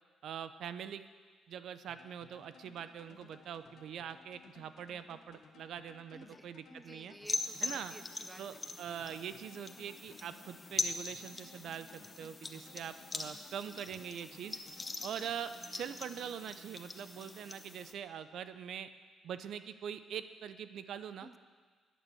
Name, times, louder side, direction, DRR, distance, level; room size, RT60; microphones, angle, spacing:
voice 1, 0.2-1.0 1.5-7.1 7.6-7.9 8.4-14.6 15.0-18.9 19.2-21.3, right 8 dB, 70° right, 12 dB, 0.6 m, -43 dB
sound 1, 1.9-16.9, left 6 dB, 65° left, 1.1 m, -61 dB
voice 2, 6.1-8.6 21.2-21.4, right 1 dB, 5° right, 11 dB, 0.6 m, -54 dB
sound 2, 7.2-17.9, left 2 dB, 20° left, 1.1 m, -42 dB
12.5 x 9.2 x 7.8 m, 1.5 s
cardioid pair, 90°, 0 cm